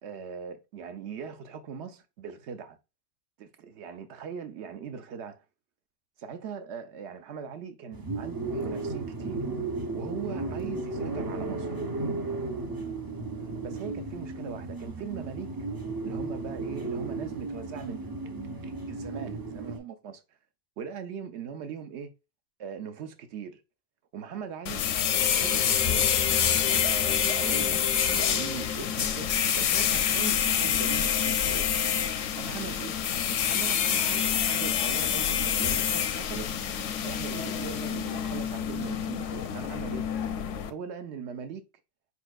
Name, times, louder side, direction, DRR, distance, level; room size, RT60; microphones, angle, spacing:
voice 1, 0.0-2.8 3.4-5.4 6.2-9.4 9.9-11.7 13.6-15.5 16.0-20.2 20.8-22.1 22.6-23.6 24.1-26.2 26.6-31.7 32.2-33.0 33.5-36.5 37.0-40.1 40.7-41.6, right 7 dB, 70° right, 0.9 m, -40 dB
sound 1, 7.9-19.8, right 3 dB, 35° right, 0.4 m, -34 dB
sound 2, 24.7-40.7, left 8 dB, 85° left, 0.9 m, -27 dB
sound 3, 25.1-30.8, left 7 dB, 60° left, 0.4 m, -38 dB
4.8 x 4.3 x 2.3 m
omnidirectional pair, 1.3 m